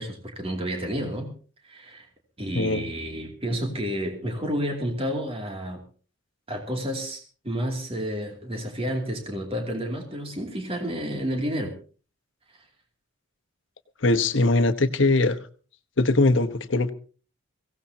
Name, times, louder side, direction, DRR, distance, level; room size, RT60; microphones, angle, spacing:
voice 1, 0.0-1.3 1.6-2.1 2.4-5.8 6.5-11.7, equal, 30° right, 2 dB, 2.6 m, -30 dB
voice 2, 2.5-2.9 14.0-15.4 16.0-16.9, left 2 dB, 65° left, 10 dB, 1.1 m, -21 dB
22.5 x 17.0 x 2.8 m, 0.38 s
head